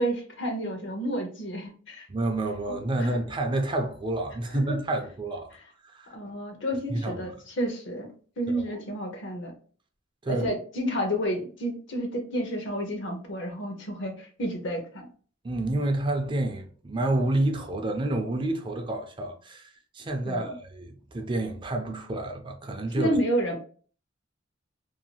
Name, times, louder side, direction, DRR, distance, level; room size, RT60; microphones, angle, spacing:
voice 1, 0.0-2.1 3.0-3.2 4.5-4.8 6.1-8.1 8.4-9.5 10.3-15.1 20.2-20.6 22.9-23.5, equal, 70° left, 0.8 m, -30 dB
voice 2, 2.1-5.6 5.9-6.1 6.9-7.3 8.5-8.6 10.2-10.5 15.4-23.1, right 2 dB, 25° right, 0.4 m, -29 dB
2.7 x 2.3 x 2.8 m
head